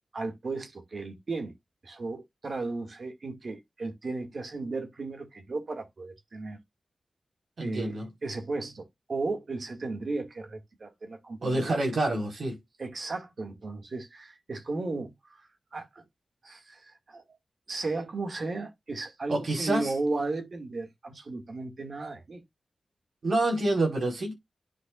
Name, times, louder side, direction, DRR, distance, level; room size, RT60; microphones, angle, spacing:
voice 1, 0.1-1.5 1.8-6.6 7.6-11.8 12.8-15.4 15.7-16.0 16.4-17.2 17.7-22.4, right 3 dB, 65° right, 2.2 m, -35 dB
voice 2, 7.6-8.1 11.4-12.6 19.3-19.9 23.2-24.3, right 2 dB, 80° right, 4.6 m, -27 dB
10.0 x 5.6 x 2.5 m
cardioid pair, 60°, 0 cm